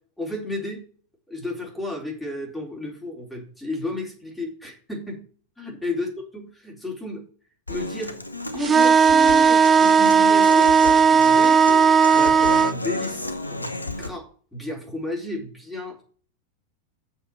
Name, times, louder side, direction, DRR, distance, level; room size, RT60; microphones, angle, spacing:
voice 1, 0.2-0.8 1.3-5.2 5.6-6.1 6.3-7.2 7.7-8.2 8.5-11.6 12.1-16.0, left 2 dB, ahead, -1 dB, 3.9 m, -33 dB
Human voice / Acoustic guitar, 7.7-14.1, left 2 dB, 85° left, 1.0 m, -33 dB
sound 1, 8.6-12.7, right 6 dB, 20° right, 0.4 m, -16 dB
7.1 x 6.4 x 7.3 m, 0.43 s
figure-of-eight pair, 90°, 0 cm